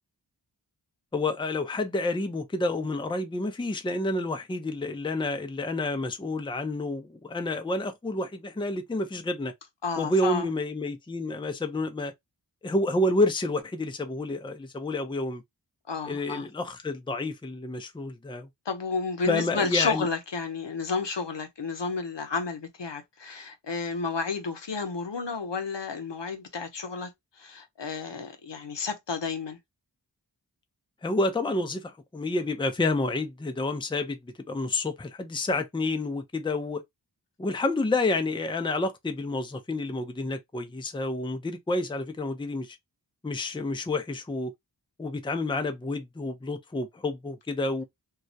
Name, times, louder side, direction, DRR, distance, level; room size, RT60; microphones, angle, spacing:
voice 1, 1.1-9.5 10.0-12.1 12.6-15.4 16.0-18.5 19.3-20.1 31.0-36.8 37.4-42.8 43.2-44.5 45.0-47.8, left 2 dB, 10° left, 0.4 m, -29 dB
voice 2, 9.8-10.5 15.9-16.5 18.7-27.1 27.4-29.6, left 4 dB, 75° left, 0.7 m, -31 dB
2.3 x 2.0 x 2.6 m
wide cardioid pair, 45°, 42 cm